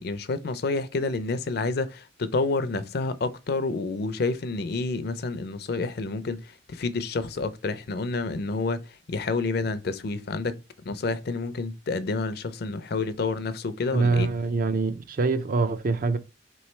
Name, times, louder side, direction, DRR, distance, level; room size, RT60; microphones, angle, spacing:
voice 1, 0.0-14.3, left 3 dB, 55° left, 0.4 m, -29 dB
voice 2, 13.9-16.2, right 3 dB, 45° right, 0.4 m, -24 dB
3.6 x 3.1 x 4.3 m
head